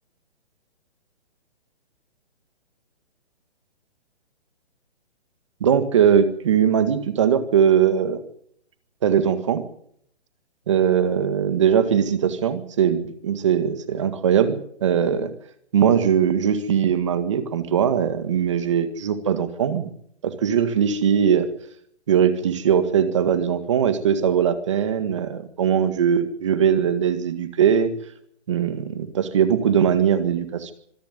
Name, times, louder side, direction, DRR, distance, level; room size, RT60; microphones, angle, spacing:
voice 1, 5.6-8.2 9.0-9.6 10.7-15.3 15.7-19.9 20.2-21.5 22.1-27.9 28.5-30.7, right 8 dB, 25° right, 10 dB, 1.9 m, -20 dB
25.5 x 11.5 x 9.8 m, 0.66 s
hypercardioid pair, 180°, 34 cm